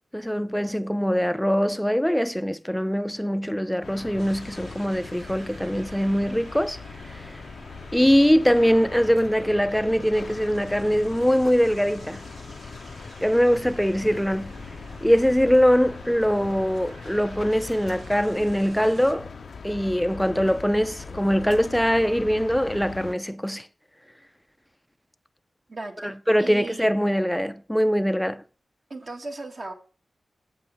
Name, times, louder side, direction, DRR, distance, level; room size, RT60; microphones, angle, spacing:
voice 1, 0.1-6.8 7.9-12.2 13.2-14.5 15.0-19.3 19.6-23.7 26.0-28.4, equal, 5° left, 0.5 m, -22 dB
sound 1, 3.8-23.2, left 5 dB, 70° left, 0.6 m, -40 dB
sound 2, 4.2-19.1, right 2 dB, 85° right, 2.0 m, -48 dB
voice 2, 25.7-26.9 28.9-29.7, right 2 dB, 50° right, 1.8 m, -37 dB
8.0 x 5.2 x 7.1 m
cardioid pair, 65°, 0 cm